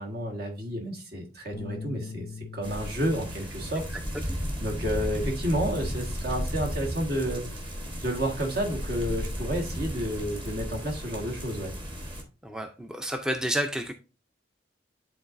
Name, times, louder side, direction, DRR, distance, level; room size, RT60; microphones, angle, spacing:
voice 1, 0.0-3.8 4.6-7.4 8.0-11.7, equal, 60° right, 1 dB, 1.5 m, -30 dB
sound 1, 1.5-7.8, left 5 dB, 70° left, 0.5 m, -45 dB
sound 2, 2.6-12.2, equal, 30° right, 1.2 m, -34 dB
voice 2, 12.4-13.9, equal, 5° right, 6 dB, 0.4 m, -30 dB
10.5 x 3.8 x 2.5 m, 0.33 s
head